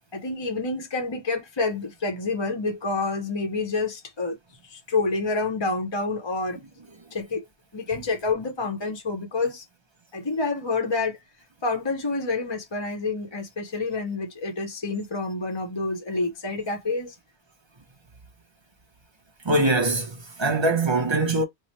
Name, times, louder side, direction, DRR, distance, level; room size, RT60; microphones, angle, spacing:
voice 1, 0.1-4.4 4.6-6.6 7.1-7.5 7.7-9.6 10.1-11.2 11.6-17.2, left 3 dB, 30° left, 0.7 m, -28 dB
voice 2, 19.4-21.4, right 2 dB, 30° right, 0.7 m, -22 dB
3.1 x 2.0 x 4.1 m
omnidirectional pair, 1.0 m